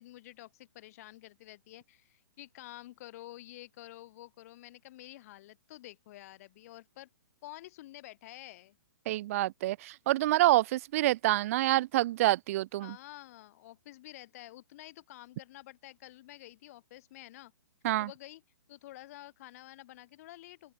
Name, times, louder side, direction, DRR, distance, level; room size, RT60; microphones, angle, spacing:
voice 1, 0.0-7.1 7.4-8.8 12.8-17.5 18.0-18.4 18.7-20.7, left 16 dB, 45° left, 1.5 m, -50 dB
voice 2, 9.1-13.0 17.8-18.1, right 16 dB, 40° right, 0.5 m, -27 dB
open air
hypercardioid pair, 140°, 12 cm